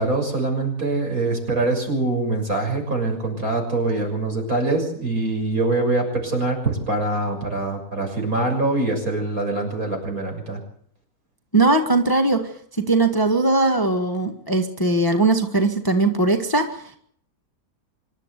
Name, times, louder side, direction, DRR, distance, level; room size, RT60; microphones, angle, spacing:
voice 1, 0.0-10.6, right 2 dB, 55° right, 3 dB, 7.1 m, -24 dB
voice 2, 11.5-12.5 12.8-17.0, right 2 dB, 15° left, 5 dB, 1.6 m, -20 dB
25.5 x 12.5 x 8.3 m, 0.62 s
omnidirectional pair, 1.8 m